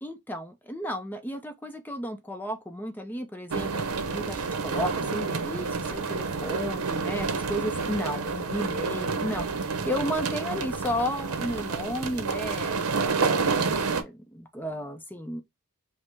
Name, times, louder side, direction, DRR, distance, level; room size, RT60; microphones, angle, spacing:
voice 1, 0.0-12.8 13.1-15.4, equal, 10° left, 0.4 m, -33 dB
sound 1, 3.5-14.0, right 4 dB, 90° right, 0.7 m, -29 dB
5.2 x 2.0 x 3.2 m
head